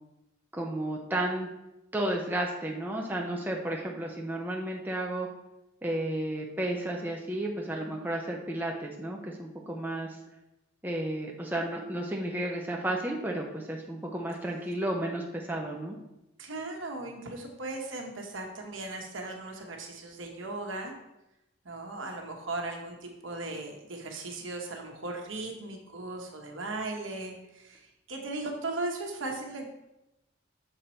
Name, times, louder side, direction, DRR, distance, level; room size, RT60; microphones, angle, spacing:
voice 1, 0.5-1.5 1.9-5.3 5.8-10.2 10.8-16.0, right 1 dB, 10° right, 0 dB, 0.6 m, -32 dB
voice 2, 16.4-20.9 21.6-27.8 28.1-29.6, right 2 dB, 75° right, 1 dB, 1.2 m, -37 dB
6.7 x 4.1 x 4.3 m, 0.91 s
head